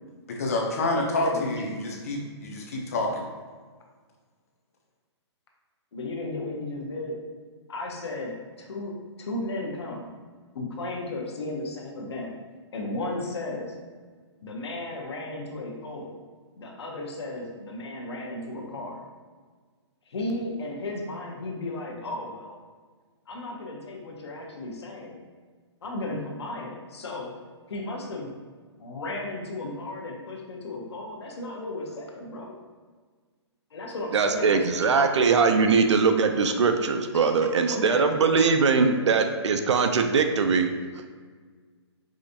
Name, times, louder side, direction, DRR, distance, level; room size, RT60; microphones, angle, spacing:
voice 1, 0.3-3.3, left 2 dB, 30° left, 0 dB, 0.5 m, -28 dB
voice 2, 1.1-1.7 5.9-7.2 7.7-10.1 10.5-12.3 12.7-13.7 14.4-16.2 16.6-19.0 20.1-22.6 23.3-25.2 25.8-27.3 27.7-28.3 28.8-32.5 33.7-35.1 37.1-39.5, left 2 dB, 65° left, 1 dB, 0.8 m, -35 dB
voice 3, 34.1-40.7, right 5 dB, 75° right, 6 dB, 0.5 m, -21 dB
4.9 x 2.5 x 2.7 m, 1.5 s
hypercardioid pair, 175°, 15 cm